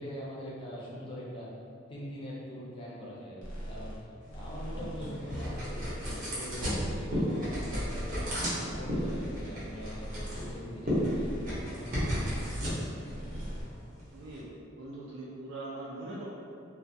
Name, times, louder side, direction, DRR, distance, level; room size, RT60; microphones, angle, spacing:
voice 1, 0.0-1.5 1.9-4.0 4.3-8.1 8.5-11.3 11.7-12.4, equal, 25° left, -6 dB, 0.4 m, -42 dB
sound 1, 3.4-4.0 4.3-5.1 5.4-6.2 6.5-7.3 7.6-8.4 8.7-9.5 9.8-10.5 10.9-11.7 12.0-12.8 13.1-13.6, equal, 85° left, 0.7 m, -41 dB
sound 2, 4.2-14.4, equal, 40° right, 0.7 m, -34 dB
voice 2, 14.1-14.5 14.7-16.2, right 2 dB, 65° right, -6 dB, 0.4 m, -41 dB
2.3 x 2.1 x 2.6 m, 2.3 s
head